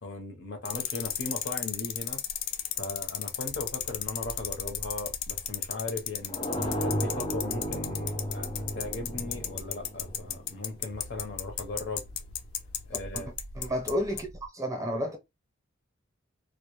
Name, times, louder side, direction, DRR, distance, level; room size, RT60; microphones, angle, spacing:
voice 1, 0.0-2.2 2.8-6.4 6.8-12.0 12.9-13.3, left 2 dB, 60° left, 0.7 m, -38 dB
sound 1, 0.7-13.9 14.2-14.3, left 11 dB, 90° left, 0.4 m, -32 dB
sound 2, 3.4-5.8 6.6-9.9 10.9-14.5, equal, 75° right, 0.4 m, -46 dB
sound 3, 6.3-11.0, equal, 25° left, 0.4 m, -34 dB
voice 2, 13.5-14.3 14.5-15.2, equal, 15° right, 0.6 m, -30 dB
2.1 x 2.1 x 2.9 m
head